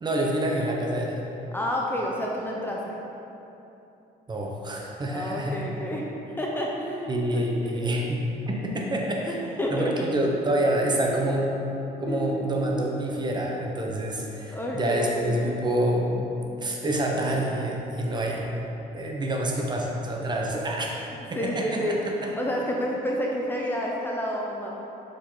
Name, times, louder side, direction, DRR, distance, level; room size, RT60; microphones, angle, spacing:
voice 1, 0.0-1.2 4.3-5.7 7.1-9.4 9.7-11.5 12.0-16.3 16.6-18.5 18.9-20.9 21.3-22.0 22.2-22.3, right 1 dB, 25° right, -1 dB, 1.0 m, -27 dB
voice 2, 1.5-3.0 5.1-6.0 6.4-7.8 9.3-9.9 11.1-11.2 12.1-13.2 14.5-15.6 21.4-22.0 22.4-24.7, equal, 10° left, -3 dB, 0.6 m, -30 dB
6.4 x 5.2 x 3.9 m, 2.9 s
cardioid pair, 110°, 17 cm